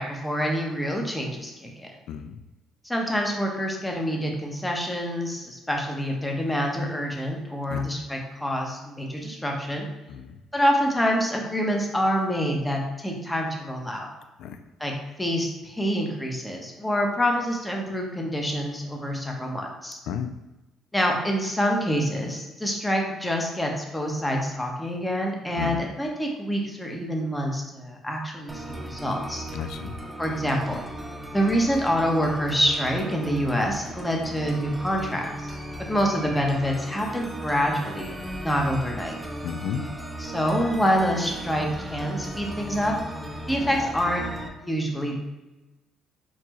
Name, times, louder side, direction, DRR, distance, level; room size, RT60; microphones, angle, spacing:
voice 1, 0.0-1.9 2.8-9.9 10.5-14.1 14.8-14.9 15.2-20.0 20.9-29.4 30.2-30.8 31.3-39.2 40.2-42.9 43.5-44.2 44.6-45.2, equal, 10° left, 0 dB, 1.0 m, -26 dB
voice 2, 2.1-2.4 7.7-7.9 10.1-10.4 14.4-14.6 20.1-20.3 25.6-25.9 29.5-30.0 39.4-39.9, left 7 dB, 75° left, 9 dB, 0.3 m, -33 dB
sound 1, 28.5-44.5, right 1 dB, 10° right, 0.6 m, -36 dB
4.3 x 2.9 x 3.0 m, 1.1 s
supercardioid pair, 65°, 0 cm